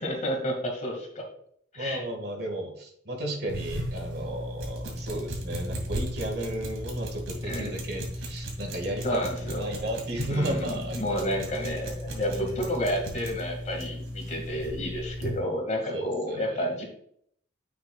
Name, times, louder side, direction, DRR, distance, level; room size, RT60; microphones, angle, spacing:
voice 1, 0.0-1.3 1.7-2.0 7.4-7.7 9.0-9.6 10.3-16.8, equal, 40° left, 1 dB, 2.0 m, -30 dB
voice 2, 1.7-11.5 12.3-12.8 15.9-16.7, right 1 dB, 55° right, 3 dB, 1.8 m, -34 dB
sound 1, 3.5-15.4, equal, 90° right, 2.5 m, -36 dB
9.4 x 7.0 x 2.3 m, 0.66 s
head